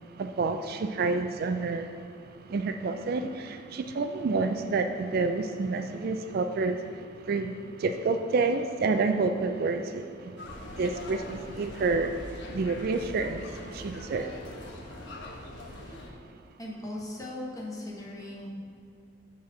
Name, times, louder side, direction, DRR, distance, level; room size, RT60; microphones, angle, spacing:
voice 1, 0.1-10.4 10.6-14.6 15.0-15.3, right 3 dB, 50° right, 7 dB, 0.3 m, -29 dB
sound 1, 10.4-16.1, left 1 dB, 65° left, 1.1 m, -42 dB
voice 2, 16.6-18.5, left 1 dB, 20° left, -3 dB, 1.3 m, -38 dB
7.5 x 4.2 x 6.0 m, 2.6 s
head